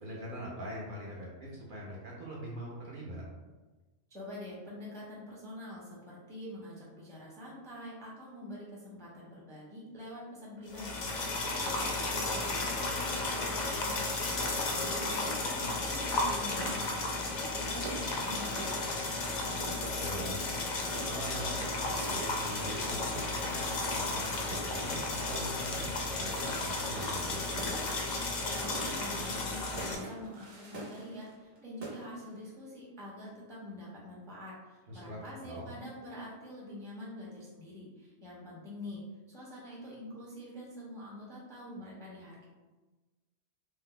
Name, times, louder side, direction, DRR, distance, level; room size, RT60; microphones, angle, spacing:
voice 1, 0.0-3.2 20.0-27.7 34.9-35.7, equal, 55° right, -4 dB, 0.7 m, -43 dB
voice 2, 4.1-11.0 11.3-14.0 14.3-19.6 28.5-39.0 39.3-42.5, left 1 dB, 5° left, -6 dB, 0.5 m, -46 dB
sound 1, 10.7-30.0, left 2 dB, 55° left, 0.5 m, -34 dB
sound 2, 15.3-31.6 31.8-32.4, right 2 dB, 80° right, 1.0 m, -46 dB
2.7 x 2.0 x 3.7 m, 1.2 s
omnidirectional pair, 1.2 m